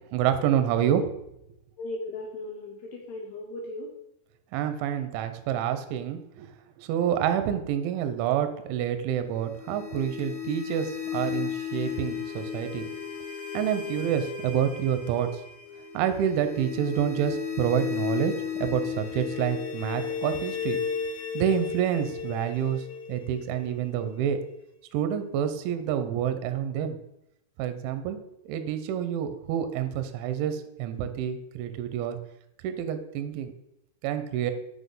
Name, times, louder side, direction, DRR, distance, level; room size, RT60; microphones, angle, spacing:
voice 1, 0.1-1.0 4.5-6.5 6.8-12.9 13.5-15.3 15.9-18.3 18.6-20.8 21.3-22.8 23.1-24.4 24.9-27.0 27.6-28.2 28.5-32.2 32.6-33.5 34.0-34.5, right 9 dB, 80° right, 9 dB, 2.9 m, -28 dB
voice 2, 1.8-3.9, left 2 dB, 80° left, 0 dB, 2.4 m, -37 dB
sound 1, 9.4-24.3, left 7 dB, 60° left, 3.3 m, -34 dB
6.5 x 6.2 x 5.3 m, 0.83 s
omnidirectional pair, 6.0 m